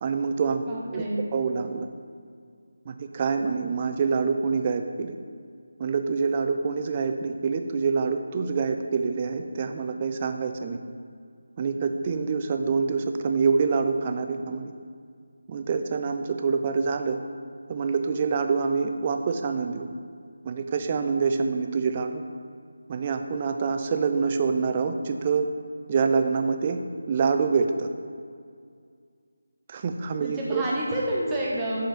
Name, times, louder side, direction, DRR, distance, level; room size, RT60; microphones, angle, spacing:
voice 1, 0.0-0.6 0.9-1.0 1.3-1.9 2.9-5.2 5.8-10.8 11.6-14.7 15.5-17.2 17.7-19.9 20.4-22.2 22.9-25.5 25.9-26.8 27.1-27.9 29.7-30.6, right 5 dB, 25° right, 6 dB, 0.3 m, -26 dB
voice 2, 0.7-1.2 30.2-31.9, right 1 dB, 10° right, -6 dB, 0.9 m, -29 dB
6.7 x 3.9 x 4.3 m, 2.2 s
figure-of-eight pair, 160°, 0 cm